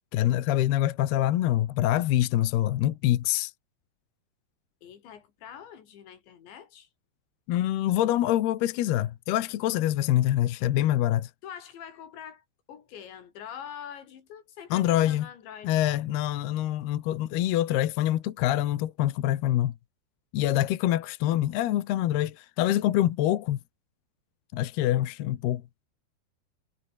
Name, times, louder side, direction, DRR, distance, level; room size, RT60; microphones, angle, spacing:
voice 1, 0.1-3.5 7.5-11.3 14.7-15.3 15.6-19.7 20.3-23.6 24.5-25.6, left 13 dB, 70° left, 3.2 m, -25 dB
voice 2, 4.8-6.9 11.4-16.1, left 8 dB, 90° left, 5.5 m, -45 dB
omnidirectional pair, 5.0 m